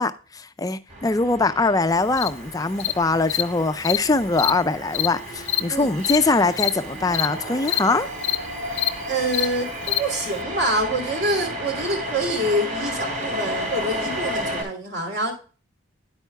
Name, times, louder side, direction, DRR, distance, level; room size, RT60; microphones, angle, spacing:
voice 1, 0.0-8.1, left 3 dB, 20° left, 0.4 m, -22 dB
sound 1, 0.9-14.6, equal, 40° right, 3.3 m, -32 dB
Cricket, 2.2-2.3 2.8-2.9 3.3-3.4 3.8-4.0 4.3-4.5 4.9-5.1 5.5-5.6 6.0-6.2 6.5-6.7 7.1-7.3 7.6-7.8 8.2-8.4 8.7-8.9 9.3-9.5 9.8-10.0, left 15 dB, 75° left, 0.6 m, -23 dB
voice 2, 9.1-15.3, right 1 dB, 55° right, 2.9 m, -26 dB
9.8 x 9.2 x 2.3 m
head